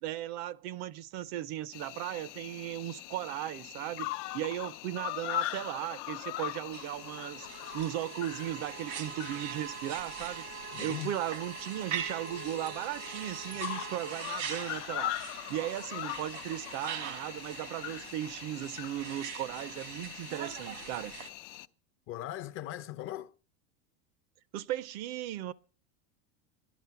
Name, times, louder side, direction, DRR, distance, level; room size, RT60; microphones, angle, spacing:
voice 1, 0.0-7.5 7.7-10.5 10.8-15.1 15.5-21.1 24.5-25.5, right 13 dB, 45° right, 0.5 m, -37 dB
Cricket, 1.7-21.7, left 15 dB, 75° left, 0.7 m, -41 dB
sound 1, 6.7-21.3, right 8 dB, 90° right, 1.8 m, -42 dB
voice 2, 10.7-11.1 22.1-23.3, left 14 dB, 35° left, 0.6 m, -39 dB
13.0 x 11.0 x 5.7 m
supercardioid pair, 140°, 36 cm